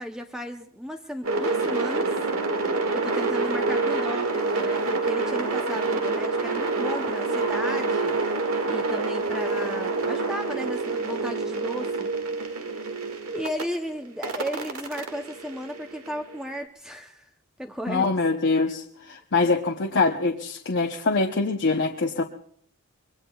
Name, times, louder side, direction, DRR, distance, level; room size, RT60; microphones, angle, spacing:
voice 1, 0.0-2.1 2.9-12.1 13.3-17.3 17.6-18.1, equal, 5° right, 4 dB, 0.7 m, -35 dB
sound 1, 1.2-13.6 14.2-16.4, right 3 dB, 85° right, 1.9 m, -27 dB
voice 2, 17.9-22.2, left 3 dB, 55° left, 2 dB, 0.8 m, -24 dB
25.5 x 22.5 x 2.3 m, 0.67 s
head